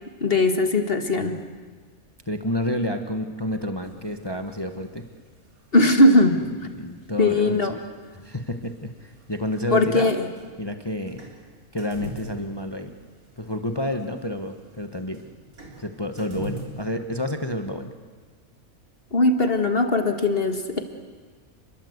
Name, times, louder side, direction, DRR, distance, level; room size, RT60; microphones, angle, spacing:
voice 1, 0.2-1.4 5.7-6.4 7.2-7.7 9.7-10.3 19.1-20.8, left 2 dB, 40° left, 6 dB, 2.1 m, -19 dB
voice 2, 2.3-5.0 6.7-7.8 8.1-10.1 10.6-11.2 11.7-12.9 13.4-15.2 15.8-17.9, left 1 dB, 20° left, 6 dB, 1.3 m, -29 dB
sound 1, 3.8-16.9, right 1 dB, 80° right, 4.2 m, -45 dB
29.5 x 22.0 x 8.1 m, 1.5 s
omnidirectional pair, 1.5 m